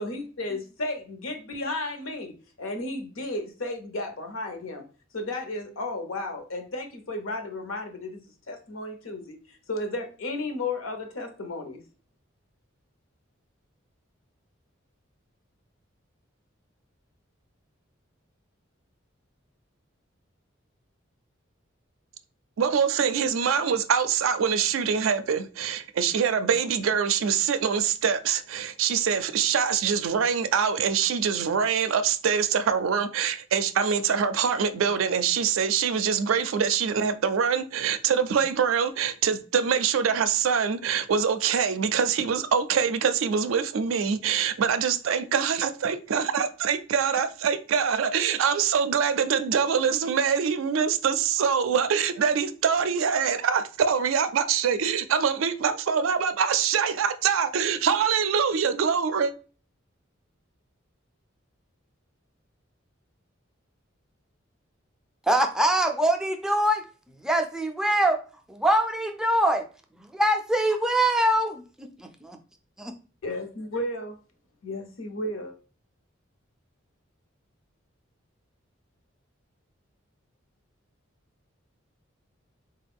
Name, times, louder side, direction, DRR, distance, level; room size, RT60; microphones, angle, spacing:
voice 1, 0.0-4.8 5.1-8.2 8.5-9.4 9.7-11.8 73.2-74.1 74.6-75.5, left 2 dB, 90° left, 0.8 m, -33 dB
voice 2, 22.6-59.3, right 7 dB, 80° right, 0.4 m, -24 dB
voice 3, 65.3-66.8 67.2-68.2 68.5-69.6 70.1-72.3, right 1 dB, 5° right, 0.3 m, -23 dB
3.8 x 2.3 x 3.4 m
head